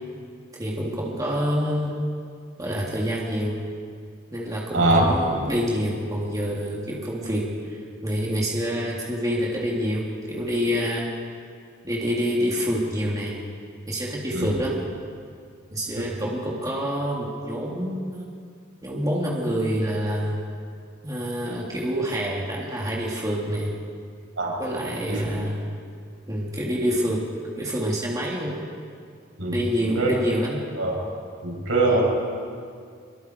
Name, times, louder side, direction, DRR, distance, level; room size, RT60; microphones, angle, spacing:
voice 1, 0.5-1.9 2.6-3.6 4.3-11.1 11.8-13.4 13.9-14.7 15.7-18.3 18.8-20.4 21.0-23.7 24.6-25.7 26.3-27.3 27.5-28.6 29.5-30.6, equal, 20° right, -4 dB, 3.0 m, -27 dB
voice 2, 4.7-5.0 14.3-14.5 16.0-16.1 24.4-24.6 25.1-25.2 29.4-29.5 29.9-30.1 30.8-31.0 31.4-32.0, right 2 dB, 90° right, -4 dB, 7.9 m, -22 dB
26.0 x 23.5 x 4.7 m, 2.2 s
head